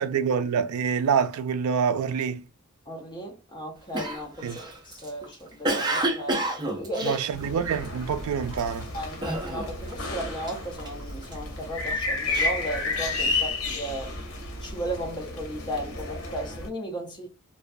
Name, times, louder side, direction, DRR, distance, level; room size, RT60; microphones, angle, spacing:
voice 1, 0.0-2.5 4.4-4.6 7.0-8.9, right 6 dB, 85° right, 0.3 m, -26 dB
voice 2, 2.9-7.2 8.9-14.1 14.6-17.3, right 1 dB, 20° left, 0.7 m, -35 dB
Cough, 3.9-8.0 8.5-8.8 9.2-9.9 10.2-11.4 11.9-13.4, right 1 dB, 20° right, 0.4 m, -30 dB
sound 1, 7.3-16.7, left 3 dB, 90° left, 0.7 m, -32 dB
2.3 x 2.2 x 2.5 m
head